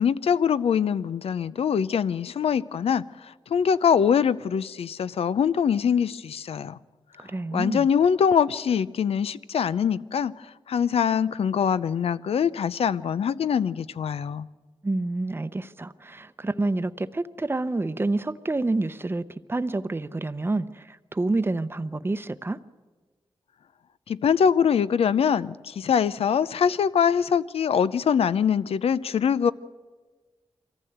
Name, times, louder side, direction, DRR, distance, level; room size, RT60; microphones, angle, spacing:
voice 1, 0.0-6.8 7.5-14.5 24.1-29.5, left 7 dB, 80° left, 16 dB, 0.5 m, -23 dB
voice 2, 7.2-7.9 14.8-19.2 19.5-22.6, right 2 dB, 25° right, 12 dB, 0.7 m, -28 dB
23.0 x 14.5 x 8.0 m, 1.3 s
cardioid pair, 70°, 10 cm